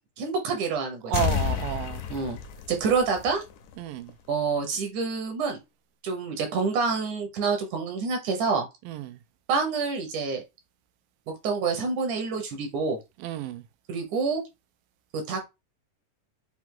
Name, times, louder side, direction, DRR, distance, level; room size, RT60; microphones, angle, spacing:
voice 1, 0.2-1.1 2.1-2.4 2.7-3.4 4.3-5.6 6.0-8.7 9.5-10.4 11.3-13.0 13.9-14.4 15.1-15.4, right 5 dB, 70° right, 2.3 m, -27 dB
sound 1, 1.1-3.7 4.1-4.2, left 9 dB, 80° left, 1.7 m, -30 dB
voice 2, 1.1-2.1 3.8-4.1 8.9-9.2 13.2-13.6, right 13 dB, 90° right, 2.2 m, -31 dB
5.8 x 2.4 x 3.7 m
omnidirectional pair, 3.7 m